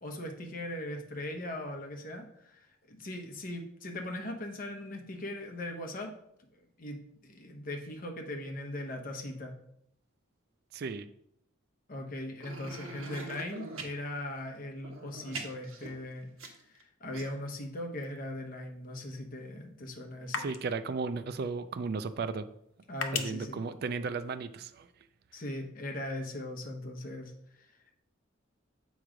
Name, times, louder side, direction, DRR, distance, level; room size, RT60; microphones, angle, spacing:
voice 1, 0.0-2.6 2.9-6.1 6.8-9.6 11.9-16.3 16.6-20.5 22.9-23.6 25.3-27.8, left 1 dB, 45° left, 3 dB, 0.9 m, -39 dB
voice 2, 10.7-11.1 20.3-22.4 23.1-24.9, right 4 dB, 50° right, 12 dB, 0.3 m, -35 dB
sound 1, 12.4-13.9 14.8-16.8 17.1-17.2, right 2 dB, 85° right, 1.2 m, -43 dB
sound 2, 18.0-24.7, left 6 dB, 70° left, 0.6 m, -44 dB
7.5 x 3.1 x 4.9 m, 0.75 s
head